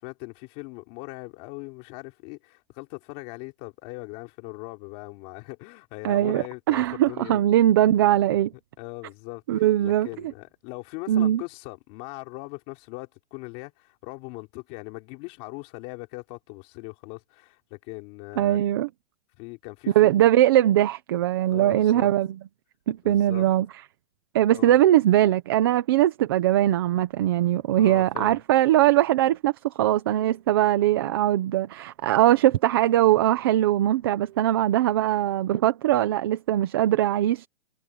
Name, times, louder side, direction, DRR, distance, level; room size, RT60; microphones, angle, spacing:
voice 1, 0.0-7.4 8.8-18.6 19.4-20.1 21.5-22.1 23.0-23.5 24.5-24.8 27.7-28.4, left 25 dB, 20° left, 4.2 m, -40 dB
voice 2, 6.0-8.5 9.5-10.1 11.1-11.4 18.4-18.9 19.9-22.3 22.9-23.7 24.3-37.5, right 13 dB, 20° right, 0.9 m, -21 dB
hypercardioid pair, 180°, 33 cm